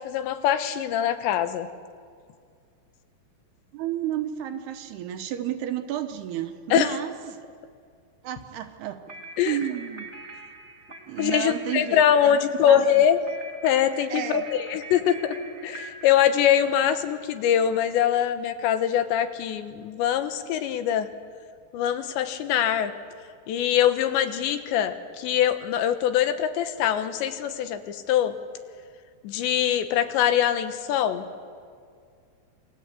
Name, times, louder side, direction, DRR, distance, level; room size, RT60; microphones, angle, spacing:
voice 1, 0.0-1.7 6.7-7.0 9.4-9.6 11.2-13.2 13.6-15.4 15.6-21.1 21.7-22.9 23.5-28.4 29.2-31.3, left 10 dB, 85° left, 9 dB, 3.5 m, -23 dB
voice 2, 3.7-7.4 8.2-9.0 9.4-10.1 11.1-13.1 14.1-14.5, right 12 dB, 75° right, 7 dB, 3.0 m, -32 dB
sound 1, 9.1-17.4, right 2 dB, 40° right, 1.0 m, -43 dB
28.0 x 22.0 x 8.5 m, 2.2 s
omnidirectional pair, 5.0 m